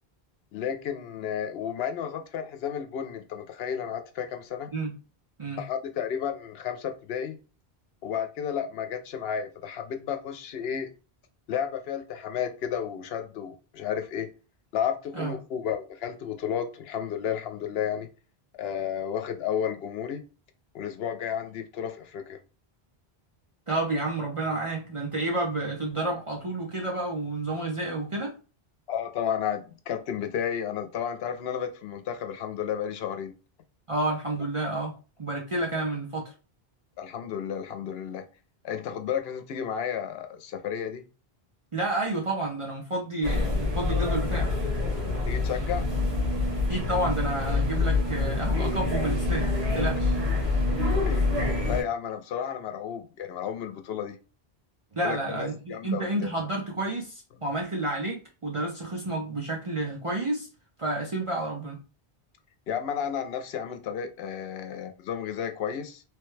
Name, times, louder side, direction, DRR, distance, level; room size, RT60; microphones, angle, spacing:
voice 1, 0.5-4.7 5.6-7.4 8.0-10.9 11.5-14.3 14.7-18.1 18.5-20.2 20.7-22.4 28.9-33.3 37.0-38.2 38.6-41.0 45.3-45.9 51.0-51.3 51.6-54.2 55.0-56.3 62.7-66.0, left 8 dB, 75° left, 0.8 m, -32 dB
voice 2, 23.7-28.3 33.9-36.3 41.7-44.5 46.7-50.2 54.9-60.5 60.8-61.8, right 2 dB, 40° right, 0.5 m, -30 dB
sound 1, 43.2-51.8, left 3 dB, 80° right, 1.5 m, -26 dB
3.1 x 2.2 x 3.1 m
omnidirectional pair, 1.1 m